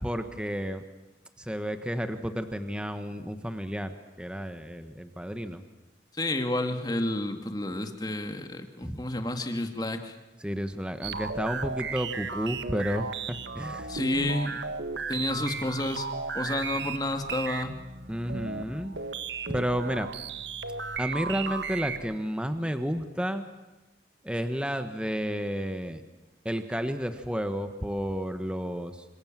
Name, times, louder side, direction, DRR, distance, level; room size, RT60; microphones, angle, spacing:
voice 1, 0.0-0.8 1.4-5.6 8.8-9.0 10.4-13.9 18.1-19.0 19.5-20.1 21.0-23.4 24.2-26.0 26.4-29.0, equal, 5° right, 8 dB, 1.3 m, -31 dB
voice 2, 6.1-10.1 13.9-14.6 15.1-16.1 16.3-17.8, left 1 dB, 20° left, 6 dB, 2.2 m, -30 dB
sound 1, 11.0-22.2, right 5 dB, 85° right, 1.6 m, -35 dB
28.0 x 26.5 x 7.5 m, 1.1 s
head